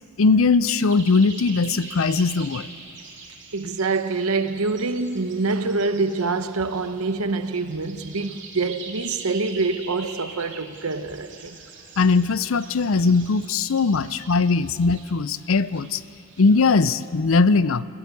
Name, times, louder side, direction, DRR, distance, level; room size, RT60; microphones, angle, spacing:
voice 1, 0.2-2.7 12.0-16.0 16.4-17.8, left 4 dB, 65° left, 0.5 m, -20 dB
sound 1, 0.8-17.1, right 4 dB, 55° right, 3.4 m, -43 dB
voice 2, 3.5-11.6, right 3 dB, 90° right, 1.0 m, -25 dB
26.5 x 14.5 x 8.4 m
head